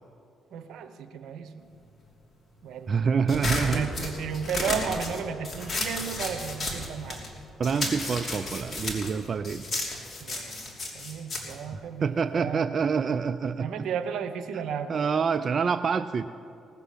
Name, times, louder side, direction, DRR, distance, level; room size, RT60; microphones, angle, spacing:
voice 1, 0.5-1.7 2.6-7.3 10.2-10.7 10.9-12.7 13.6-15.1, right 7 dB, 80° right, 10 dB, 0.9 m, -34 dB
voice 2, 2.9-3.9 7.6-9.7 11.7-13.7 14.9-16.3, right 6 dB, 45° right, 10 dB, 0.3 m, -27 dB
sound 1, 3.3-7.3 7.6-12.4, left 2 dB, 30° left, 2.8 m, -33 dB
18.0 x 6.9 x 8.4 m, 2.7 s
cardioid pair, 90°, 0 cm